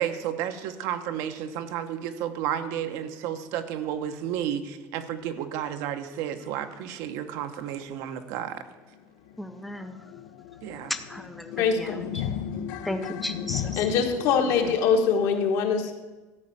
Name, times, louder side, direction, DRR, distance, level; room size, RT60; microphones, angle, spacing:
voice 1, 0.0-8.6 10.6-10.9 12.9-13.1, right 10 dB, 65° right, 9 dB, 0.9 m, -32 dB
sound 1, 7.9-8.0 8.4-8.5 8.7-14.8, left 9 dB, 90° left, 0.8 m, -36 dB
voice 2, 9.4-10.0 10.9-12.2 12.8-13.8, left 1 dB, ahead, 7 dB, 0.5 m, -35 dB
voice 3, 11.6-12.2 13.8-15.9, left 6 dB, 60° left, 4 dB, 1.5 m, -23 dB
13.0 x 5.4 x 8.6 m, 1.2 s
cardioid pair, 175°, 6 cm